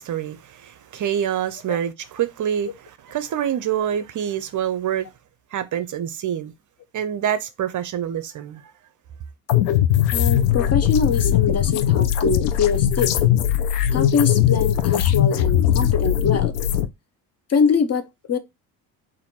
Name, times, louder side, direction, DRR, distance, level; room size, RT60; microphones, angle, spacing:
voice 1, 0.0-5.1 5.5-6.5 6.9-8.7, right 9 dB, 40° right, 0.6 m, -26 dB
sound 1, 9.5-16.9, left 11 dB, 80° left, 0.7 m, -19 dB
voice 2, 10.1-13.1 13.9-16.6 17.5-18.4, left 5 dB, 30° left, 0.8 m, -23 dB
4.3 x 2.7 x 4.1 m
hypercardioid pair, 70°, 47 cm